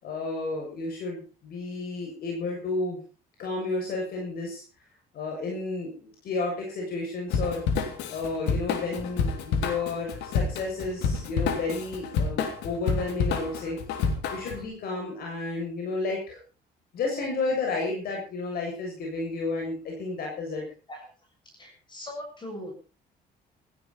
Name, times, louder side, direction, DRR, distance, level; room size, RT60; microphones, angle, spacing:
voice 1, 0.0-3.0 3.4-4.6 5.1-7.6 8.1-13.8 14.3-16.4 16.9-20.7, left 3 dB, 65° left, 0 dB, 7.1 m, -32 dB
Drum kit / Drum, 7.3-14.6, left 5 dB, 90° left, 3.1 m, -28 dB
voice 2, 21.6-22.7, left 1 dB, 25° left, 3 dB, 7.2 m, -39 dB
17.5 x 15.0 x 4.3 m, 0.34 s
cardioid pair, 110°, 17 cm